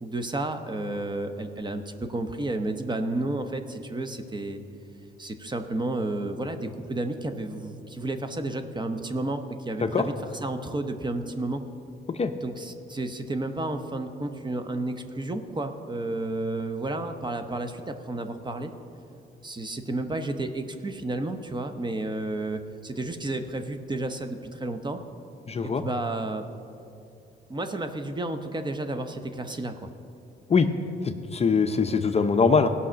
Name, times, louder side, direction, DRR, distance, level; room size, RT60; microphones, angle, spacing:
voice 1, 0.0-4.6 5.2-10.1 10.4-11.6 12.4-18.7 19.4-25.0 25.6-26.4 27.5-29.9, right 2 dB, 20° right, 7 dB, 0.9 m, -31 dB
voice 2, 25.5-25.8 30.5-30.7 31.0-32.7, left 5 dB, 30° left, 8 dB, 0.6 m, -22 dB
16.5 x 5.6 x 6.3 m, 2.7 s
cardioid pair, 90°, 20 cm